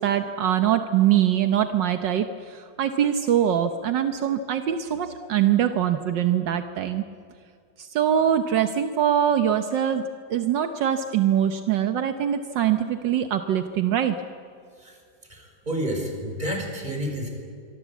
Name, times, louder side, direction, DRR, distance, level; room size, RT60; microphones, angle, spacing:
voice 1, 0.0-7.0 7.8-14.2, right 10 dB, 75° right, 8 dB, 1.6 m, -23 dB
voice 2, 15.3-17.3, equal, 25° right, 2 dB, 5.2 m, -30 dB
26.0 x 24.0 x 8.4 m, 2.3 s
omnidirectional pair, 2.0 m